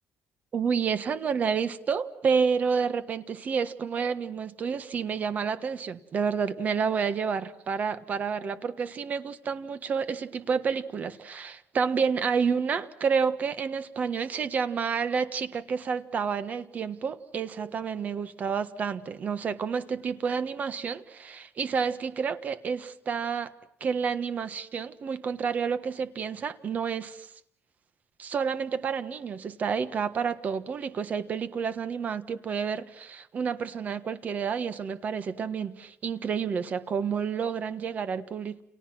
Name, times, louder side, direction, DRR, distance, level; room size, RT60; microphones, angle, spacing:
voice 1, 0.5-23.5 23.8-27.3 28.2-38.6, right 6 dB, 35° right, 1.4 m, -29 dB
30.0 x 29.5 x 6.2 m
cardioid pair, 160°, 4 cm